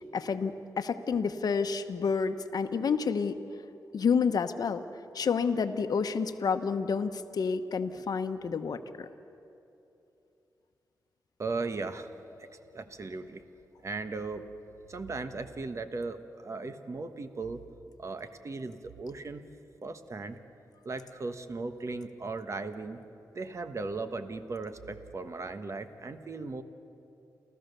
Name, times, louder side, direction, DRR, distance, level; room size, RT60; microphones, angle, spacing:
voice 1, 0.1-3.4 3.9-4.8 5.1-9.1, left 5 dB, 65° left, 8 dB, 0.9 m, -29 dB
voice 2, 11.4-12.1 12.4-12.5 12.7-13.4 13.8-14.4 14.9-17.6 18.0-19.4 19.8-20.4 20.8-23.0 23.3-26.6, right 3 dB, 45° right, 9 dB, 1.2 m, -37 dB
29.0 x 14.0 x 6.7 m, 2.8 s
cardioid pair, 90°, 7 cm